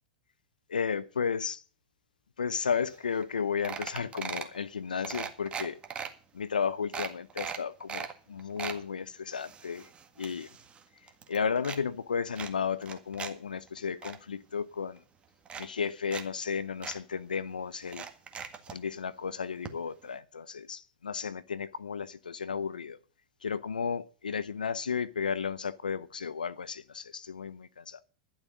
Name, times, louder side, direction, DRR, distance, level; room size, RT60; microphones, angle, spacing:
voice 1, 0.7-1.6 2.4-5.8 6.3-9.9 10.2-10.5 11.3-15.0 15.6-18.0 18.7-23.0 23.4-28.0, left 6 dB, 90° left, 0.7 m, -33 dB
sound 1, 2.9-3.0 3.2-3.4 3.6-4.6 5.0-6.1 6.5-6.6 6.9-8.1 8.4-8.8 9.3-10.8 11.1-11.8 12.3-13.3 13.7-14.2 15.0-15.1 15.4-16.2 16.5-16.6 16.8-17.0 17.8-18.8 19.6-19.7 20.0-20.1, right 7 dB, 25° right, 1.8 m, -39 dB
12.0 x 7.4 x 7.8 m
hypercardioid pair, 100°, 4 cm